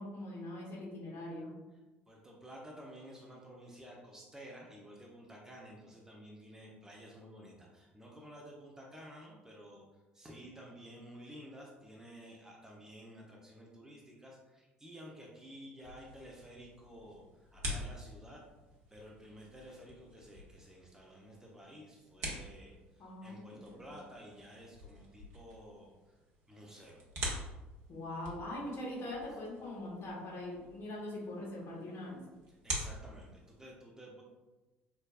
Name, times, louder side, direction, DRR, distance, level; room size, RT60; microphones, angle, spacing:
voice 1, 0.0-1.5 23.0-23.4 27.9-32.2, left 1 dB, 45° left, -4 dB, 1.3 m, -42 dB
voice 2, 2.1-18.4 18.9-26.2 26.5-27.0 29.3-29.4 32.5-34.2, equal, 10° right, -2 dB, 0.8 m, -52 dB
sound 1, 15.8-33.7, right 1 dB, 55° right, 0.9 m, -46 dB
4.8 x 2.2 x 2.4 m, 1.1 s
figure-of-eight pair, 55°, 6 cm